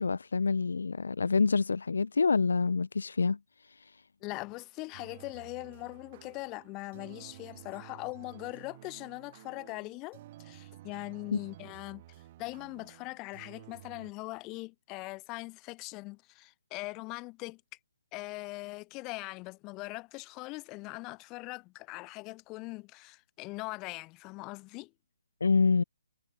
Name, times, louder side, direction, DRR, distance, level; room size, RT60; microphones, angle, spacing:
voice 1, 0.0-3.4 3.6-4.0 11.3-11.4 25.4-25.8, left 4 dB, 75° left, 0.4 m, -27 dB
voice 2, 4.2-12.0 12.4-17.6 18.1-24.9, left 24 dB, 20° left, 1.1 m, -41 dB
sound 1, 4.9-14.1, right 15 dB, 35° right, 1.4 m, -53 dB
hypercardioid pair, 150°, 0 cm